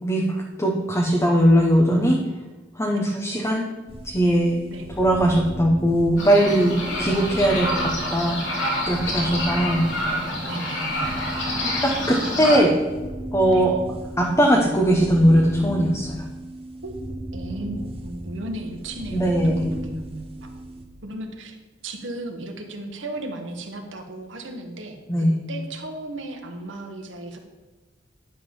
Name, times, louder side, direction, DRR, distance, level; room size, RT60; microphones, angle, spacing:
voice 1, 0.0-2.2 2.8-3.7 4.0-4.6 5.0-9.8 11.6-12.7 13.3-13.8 14.2-16.2 19.1-19.7 25.1-25.3, equal, 15° left, 0 dB, 0.9 m, -20 dB
sound 1, 3.9-20.9, right 1 dB, 30° right, 1.1 m, -36 dB
sound 2, 6.2-12.6, left 1 dB, 85° left, 2.5 m, -27 dB
voice 2, 10.4-11.1 13.5-13.7 16.8-16.9 17.3-20.7 21.0-21.6 21.8-27.4, right 1 dB, 75° right, 4 dB, 1.3 m, -35 dB
11.0 x 3.8 x 7.1 m, 1.2 s
head